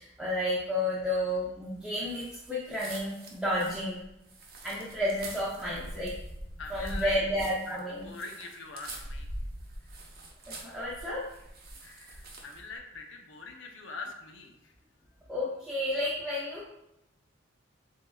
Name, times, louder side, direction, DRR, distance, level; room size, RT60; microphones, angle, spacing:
voice 1, 0.0-4.0 4.6-6.2 6.7-8.1 10.5-11.3 15.3-16.7, left 1 dB, 5° right, -7 dB, 0.6 m, -31 dB
sound 1, 2.0-12.7, right 1 dB, 50° right, 0.9 m, -43 dB
voice 2, 6.6-7.1 7.7-9.3 11.8-14.7, left 4 dB, 70° left, 3 dB, 0.7 m, -42 dB
7.6 x 2.7 x 2.3 m, 0.84 s
head